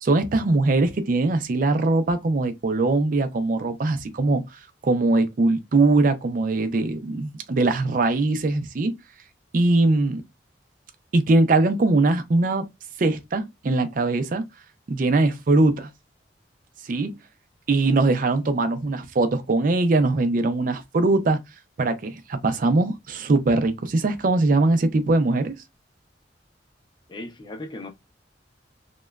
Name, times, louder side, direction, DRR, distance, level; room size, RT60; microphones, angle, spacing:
voice 1, 0.0-4.4 4.8-8.9 9.5-10.2 11.1-12.6 13.0-14.4 14.9-15.9 16.9-17.1 17.7-21.4 21.8-25.5, right 2 dB, 50° right, 0.4 m, -21 dB
voice 2, 27.1-27.9, left 2 dB, 25° left, 0.5 m, -36 dB
2.9 x 2.2 x 2.2 m
head